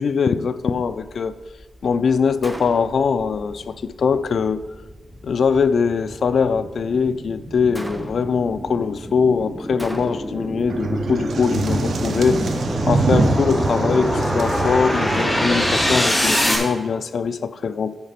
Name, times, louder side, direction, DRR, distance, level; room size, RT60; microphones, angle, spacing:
voice 1, 0.0-1.3 1.8-4.6 5.2-12.4 12.9-17.9, left 5 dB, 65° left, 0.4 m, -22 dB
sound 1, 2.4-16.6, equal, 10° left, 1.8 m, -25 dB
Gunshot gunfire, 2.4-3.1 7.7-8.4 9.8-10.5, right 1 dB, 5° right, 0.7 m, -35 dB
sound 2, 10.7-15.9, right 3 dB, 80° right, 0.8 m, -24 dB
8.9 x 6.6 x 5.1 m
wide cardioid pair, 140°, 0 cm